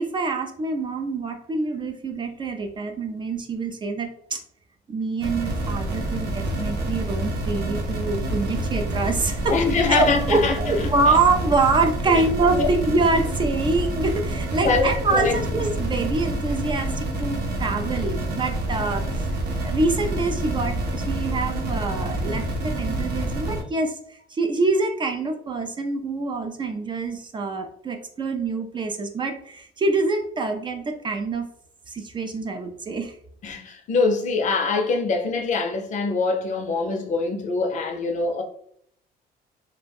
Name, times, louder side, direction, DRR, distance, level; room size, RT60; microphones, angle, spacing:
voice 1, 0.0-4.4 4.9-9.5 9.9-19.3 19.6-31.5 31.9-33.2, right 3 dB, 30° right, 0.4 m, -25 dB
sound 1, 5.2-23.6, right 1 dB, 80° right, 0.7 m, -27 dB
voice 2, 9.5-10.5 11.1-11.2 12.6-12.7 14.6-15.4 33.4-38.4, left 4 dB, 45° left, 0.5 m, -23 dB
2.4 x 2.1 x 3.3 m
cardioid pair, 110°, 17 cm